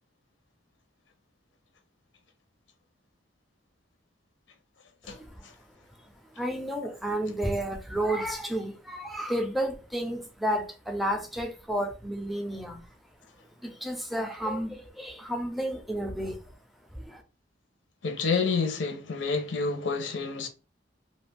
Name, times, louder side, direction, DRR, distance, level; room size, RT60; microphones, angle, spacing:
voice 1, 5.0-5.5 6.0-12.9 13.6-16.6 16.9-17.2, right 1 dB, ahead, 0.5 m, -32 dB
voice 2, 18.0-20.5, left 4 dB, 90° left, 0.6 m, -28 dB
2.4 x 2.4 x 3.3 m
head